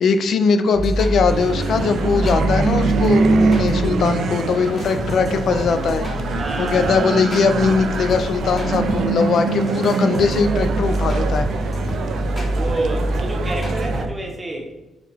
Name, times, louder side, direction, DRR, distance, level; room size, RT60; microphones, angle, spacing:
voice 1, 0.0-6.0 6.3-11.5, left 5 dB, 60° left, 9 dB, 0.4 m, -20 dB
sound 1, 0.7-9.0 9.5-14.1, equal, 30° left, 0.9 m, -26 dB
sound 2, 1.3-14.1, right 4 dB, 65° right, 0.3 m, -24 dB
voice 2, 6.4-7.2 11.9-14.7, right 2 dB, 20° right, 1 dB, 0.8 m, -29 dB
4.7 x 2.2 x 3.4 m, 1.1 s
cardioid pair, 90°, 0 cm